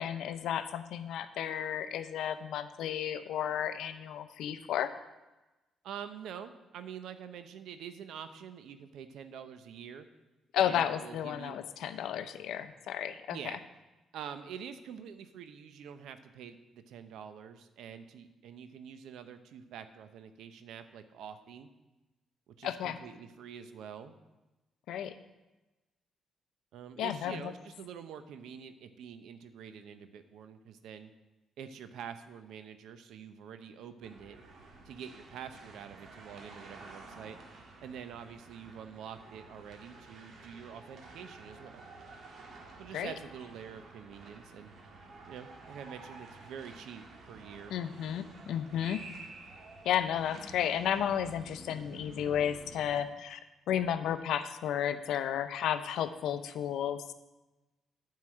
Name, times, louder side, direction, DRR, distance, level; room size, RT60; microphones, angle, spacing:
voice 1, 0.0-4.9 10.5-13.5 22.6-23.0 24.9-25.1 27.0-27.5 42.9-43.1 47.7-49.0 49.8-53.4 53.7-57.1, left 9 dB, 80° left, 11 dB, 0.6 m, -33 dB
voice 2, 5.8-10.1 10.6-11.6 13.3-13.6 14.1-21.7 22.5-24.1 26.7-31.1 31.6-34.4 34.8-37.4 37.8-41.8 42.8-44.7 45.3-47.8, right 8 dB, 80° right, 10 dB, 0.7 m, -46 dB
sound 1, 34.0-53.0, right 2 dB, 65° right, 1.6 m, -51 dB
9.4 x 4.7 x 7.7 m, 1.1 s
cardioid pair, 90°, 0 cm